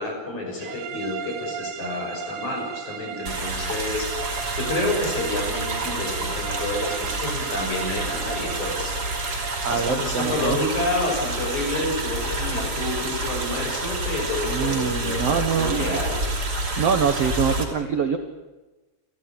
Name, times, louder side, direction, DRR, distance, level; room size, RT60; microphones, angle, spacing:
voice 1, 0.0-9.4 9.7-16.2, left 2 dB, 45° left, 2 dB, 7.3 m, -29 dB
sound 1, 0.6-10.1, right 8 dB, 60° right, 3.3 m, -36 dB
sound 2, 3.3-17.7, right 2 dB, 25° right, 2.9 m, -28 dB
voice 2, 9.6-10.6 14.4-16.0 16.8-18.2, right 7 dB, 80° right, 6 dB, 1.4 m, -24 dB
29.5 x 14.5 x 8.8 m, 1.1 s
omnidirectional pair, 4.8 m